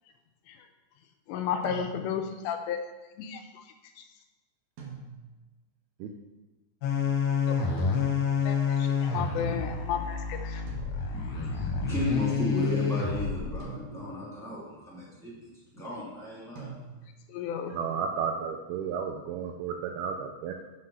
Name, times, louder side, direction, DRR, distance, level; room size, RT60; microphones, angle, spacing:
voice 1, 1.3-2.8 3.2-3.4 8.4-8.6 9.0-10.6 17.3-17.8, left 7 dB, 80° left, 5 dB, 2.8 m, -32 dB
sound 1, 1.6-2.4 4.8-5.5 7.8-8.5 10.7-11.4 13.6-14.4 16.5-17.3, right 5 dB, 60° right, 2.4 m, -45 dB
sound 2, 6.8-13.6, left 5 dB, 65° left, 2.4 m, -28 dB
voice 2, 10.9-16.7, left 2 dB, ahead, -7 dB, 2.1 m, -34 dB
voice 3, 17.7-20.5, right 6 dB, 85° right, 3 dB, 2.2 m, -32 dB
7.7 x 5.8 x 5.7 m, 1.2 s
omnidirectional pair, 5.2 m